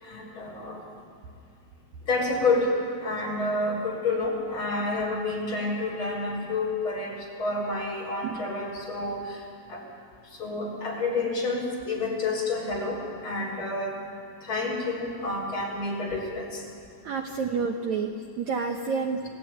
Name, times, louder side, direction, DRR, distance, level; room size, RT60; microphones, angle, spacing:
voice 1, 0.0-0.8 2.1-2.7 3.0-9.4 9.7-9.8 10.3-14.0 14.4-16.6, left 2 dB, 30° left, -2 dB, 5.7 m, -29 dB
voice 2, 17.0-19.3, right 5 dB, 80° right, 4 dB, 1.6 m, -29 dB
28.0 x 18.0 x 9.4 m, 2.4 s
omnidirectional pair, 4.9 m